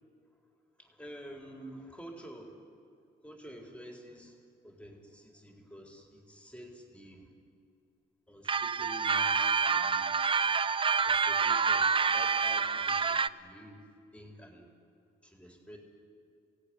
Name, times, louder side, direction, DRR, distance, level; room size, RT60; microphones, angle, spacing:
voice 1, 0.8-2.6 3.2-4.4 4.6-7.3 8.3-10.2 11.0-13.8 14.1-14.7 15.2-15.8, right 1 dB, 5° left, 1 dB, 4.0 m, -49 dB
sound 1, 8.5-13.3, right 5 dB, 25° right, 0.6 m, -27 dB
23.0 x 17.5 x 9.9 m, 2.4 s
cardioid pair, 90°, 20 cm